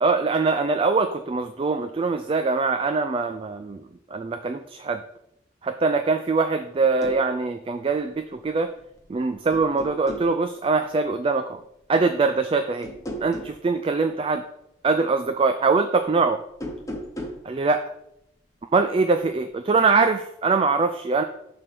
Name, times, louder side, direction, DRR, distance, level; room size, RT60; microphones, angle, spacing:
voice 1, 0.0-3.8 4.1-5.0 5.6-8.7 9.1-11.6 11.9-12.9 13.2-14.4 14.8-16.4 17.4-17.8 18.7-21.2, right 4 dB, 30° right, 8 dB, 0.3 m, -23 dB
sound 1, 7.0-7.2 8.8-9.1 9.5-10.3 12.8-13.6 16.5-17.5, equal, 15° left, 0.9 m, -35 dB
7.3 x 3.4 x 6.0 m, 0.81 s
head